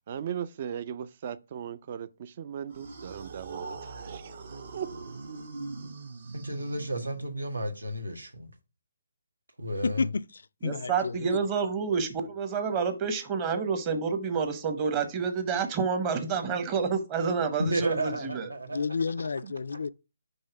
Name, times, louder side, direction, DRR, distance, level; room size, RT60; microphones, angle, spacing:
voice 1, 0.1-5.2 16.6-16.7 19.4-19.5, right 9 dB, 40° right, 0.4 m, -38 dB
sound 1, 2.7-7.5, right 3 dB, 60° right, 1.0 m, -41 dB
voice 2, 6.3-8.5 9.6-10.1 17.6-18.8 19.2-19.3 19.7-19.8, right 1 dB, 80° right, 1.3 m, -32 dB
voice 3, 9.8-11.4 18.7-19.9, left 4 dB, 65° left, 0.3 m, -31 dB
voice 4, 10.6-18.5, right 5 dB, 25° right, 0.9 m, -29 dB
5.4 x 3.3 x 5.6 m
figure-of-eight pair, 145°, 0 cm